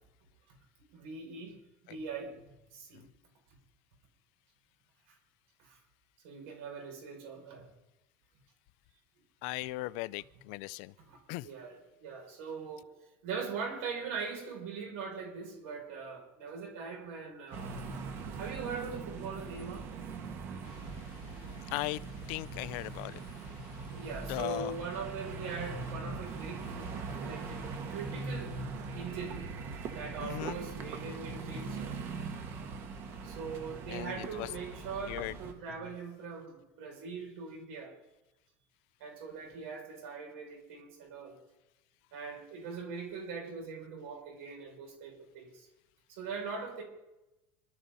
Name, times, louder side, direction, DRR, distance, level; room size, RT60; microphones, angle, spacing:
voice 1, 0.9-2.4 2.7-3.0 5.6-5.8 6.2-7.6 11.0-12.9 13.2-17.8 18.3-19.9 23.9-26.9 27.2-28.5 28.9-29.4 29.9-31.9 33.2-38.0 39.0-41.4 42.1-45.7 46.1-46.8, right 5 dB, 75° right, 6.5 m, -41 dB
voice 2, 9.4-10.9 11.3-11.5 20.7-24.0 24.3-24.7 30.2-30.6 33.9-34.5 35.1-35.3, left 21 dB, 55° left, 0.4 m, -39 dB
sound 1, 17.5-35.5, right 4 dB, 35° right, 1.5 m, -41 dB
26.5 x 13.0 x 4.1 m
cardioid pair, 175°, 7 cm